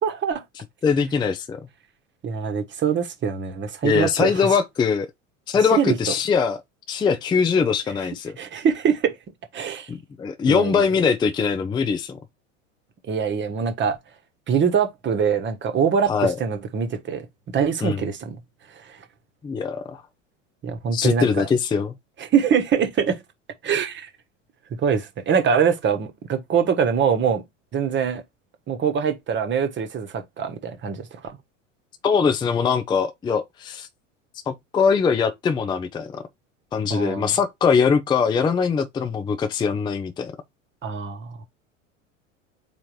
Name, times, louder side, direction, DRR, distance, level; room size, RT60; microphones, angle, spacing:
voice 1, 0.0-0.4 2.2-4.3 5.7-6.0 8.4-9.1 9.5-9.9 10.5-10.9 13.1-14.0 14.5-17.3 17.5-18.4 18.7-19.0 20.6-21.5 22.2-23.2 23.6-24.1 24.8-27.4 27.7-28.2 28.7-31.4 36.9-37.3 40.8-41.4, right 7 dB, 30° right, 1.2 m, -23 dB
voice 2, 0.8-1.6 3.8-5.1 5.5-6.6 6.9-8.4 9.9-12.2 16.1-16.4 17.8-18.0 19.4-20.0 20.9-21.9 32.0-33.9 34.5-36.2 36.7-40.3, left 6 dB, 10° left, 0.4 m, -22 dB
4.3 x 3.7 x 3.1 m
figure-of-eight pair, 80°, 39 cm